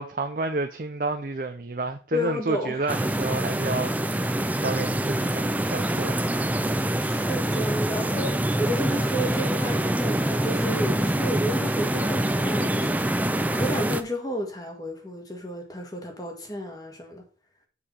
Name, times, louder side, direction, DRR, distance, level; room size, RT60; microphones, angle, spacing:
voice 1, 0.0-3.9 4.6-6.2, right 3 dB, 50° right, 0.6 m, -30 dB
voice 2, 2.1-2.8 6.9-13.1 13.5-17.2, equal, 20° left, 1.7 m, -32 dB
sound 1, 2.9-14.0, right 1 dB, 10° right, 0.4 m, -25 dB
7.0 x 4.9 x 5.5 m
head